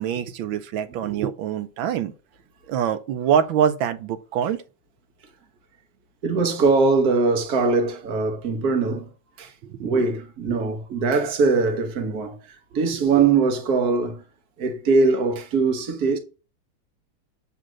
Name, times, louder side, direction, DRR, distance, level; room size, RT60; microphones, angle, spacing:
voice 1, 0.0-2.1 2.7-4.6 9.6-10.0 10.5-10.7, right 8 dB, 90° right, 1.5 m, -25 dB
voice 2, 6.2-9.1 9.4-9.5 9.8-14.2 14.6-16.2, right 4 dB, 55° right, 1.6 m, -21 dB
8.1 x 3.8 x 6.1 m
omnidirectional pair, 2.1 m